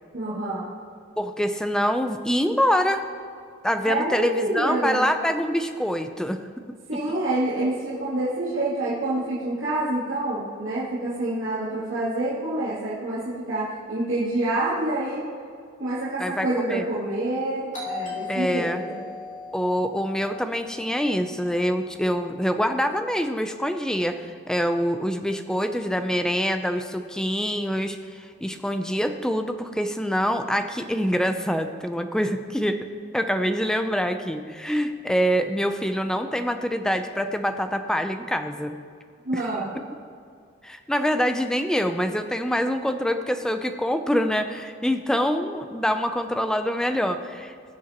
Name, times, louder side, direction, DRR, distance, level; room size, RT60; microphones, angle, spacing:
voice 1, 0.1-0.7 3.8-5.0 6.9-15.3 15.8-19.0 39.2-39.8, right 2 dB, 75° right, -11 dB, 2.7 m, -27 dB
voice 2, 1.2-3.0 3.6-6.4 16.2-16.8 18.3-18.8 19.5-32.8 33.1-38.8 40.6-47.5, equal, 5° left, 7 dB, 0.5 m, -25 dB
Doorbell, 17.7-22.3, left 4 dB, 40° left, 2.9 m, -38 dB
19.5 x 7.5 x 3.0 m, 2.3 s
head